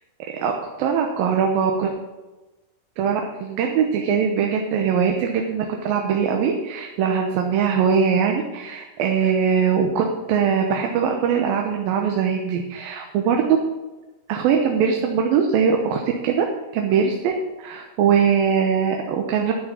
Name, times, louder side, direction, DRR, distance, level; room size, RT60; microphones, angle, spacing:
voice 1, 0.8-1.9 3.0-13.6 14.3-16.5 16.7-17.3 17.6-19.5, right 7 dB, 85° right, 2 dB, 2.8 m, -21 dB
11.5 x 6.7 x 8.3 m, 1.1 s
omnidirectional pair, 4.0 m